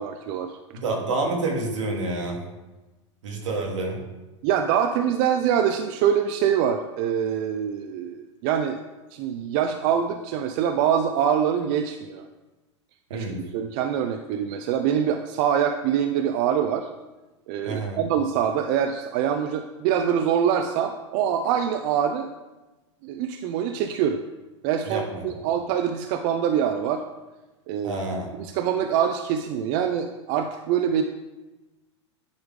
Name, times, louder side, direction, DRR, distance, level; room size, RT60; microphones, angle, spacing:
voice 1, 0.0-0.6 4.4-8.8 9.1-12.3 13.1-16.9 17.5-22.3 23.0-24.2 24.6-27.0 27.7-28.0 28.4-31.0, right 8 dB, 50° right, 6 dB, 0.5 m, -24 dB
voice 2, 0.7-2.4 3.2-4.0 13.1-13.4 17.6-18.0 24.9-25.5 27.8-28.3, right 2 dB, 80° right, 0 dB, 1.6 m, -28 dB
9.7 x 3.4 x 3.7 m, 1.1 s
hypercardioid pair, 100°, 15 cm